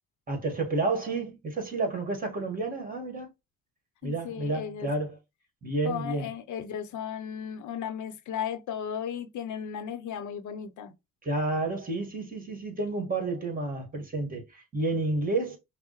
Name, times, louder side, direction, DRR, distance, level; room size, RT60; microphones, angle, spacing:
voice 1, 0.3-3.3 4.0-5.2 5.6-6.3 11.2-15.6, right 2 dB, 30° right, 1.9 m, -30 dB
voice 2, 4.0-4.9 5.8-10.9, left 8 dB, 75° left, 0.7 m, -35 dB
5.6 x 2.1 x 3.0 m
cardioid pair, 90°, 30 cm